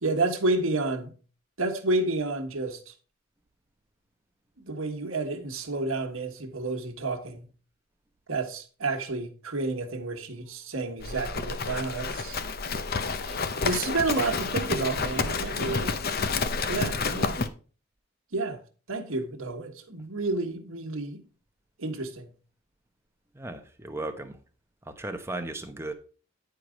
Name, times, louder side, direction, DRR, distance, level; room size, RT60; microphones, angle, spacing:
voice 1, 0.0-1.1 1.6-2.9 4.6-7.5 8.3-12.4 13.2-16.0 16.7-17.4 18.3-18.6 18.9-21.2 21.8-22.3, right 3 dB, 70° right, 1.4 m, -30 dB
Livestock farm animals working animals, 11.0-17.5, left 4 dB, 45° left, 0.6 m, -29 dB
voice 2, 23.3-24.4 24.8-25.9, right 2 dB, 10° right, 0.8 m, -36 dB
10.0 x 4.8 x 5.1 m
head